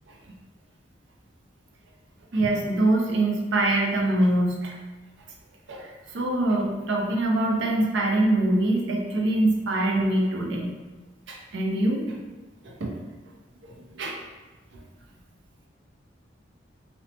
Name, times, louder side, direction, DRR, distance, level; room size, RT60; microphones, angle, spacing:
voice 1, 2.3-4.8 5.7-10.7 11.3-12.2 12.6-12.9 13.6-14.2 14.7-14.8, right 1 dB, 70° right, 0 dB, 0.5 m, -24 dB
2.9 x 2.1 x 2.7 m, 1.3 s
head